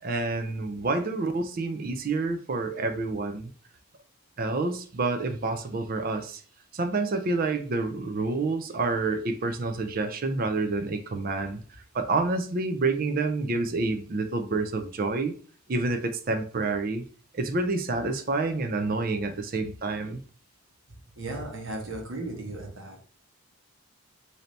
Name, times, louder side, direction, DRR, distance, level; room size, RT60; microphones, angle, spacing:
voice 1, 0.0-3.5 4.4-6.4 6.7-11.6 11.9-15.3 15.7-17.1 17.3-20.2, right 3 dB, 40° right, 0.4 m, -28 dB
voice 2, 21.2-23.0, right 2 dB, 65° right, 1.1 m, -35 dB
3.3 x 2.7 x 3.9 m
head